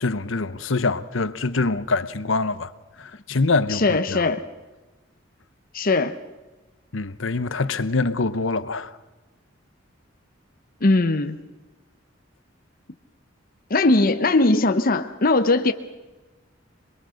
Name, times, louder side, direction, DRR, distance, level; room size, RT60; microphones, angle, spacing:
voice 1, 0.0-2.7 3.0-4.2 6.9-8.9, left 3 dB, 85° left, 1.0 m, -24 dB
voice 2, 3.7-4.4 5.7-6.2 10.8-11.4 13.7-15.7, left 2 dB, 50° left, 0.9 m, -19 dB
27.0 x 21.5 x 6.5 m
head